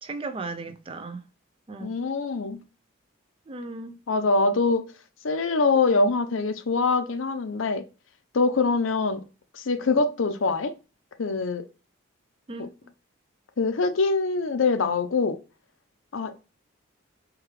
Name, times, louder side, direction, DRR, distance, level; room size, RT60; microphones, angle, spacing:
voice 1, 0.0-1.2 1.7-1.9 3.5-4.0 12.5-12.9, right 3 dB, 25° right, 0.4 m, -36 dB
voice 2, 1.8-2.6 4.1-4.9 5.2-7.8 8.3-9.2 9.5-10.7 11.2-11.6 13.6-15.4 16.1-16.4, left 3 dB, 80° left, 0.6 m, -24 dB
4.7 x 2.3 x 3.1 m
head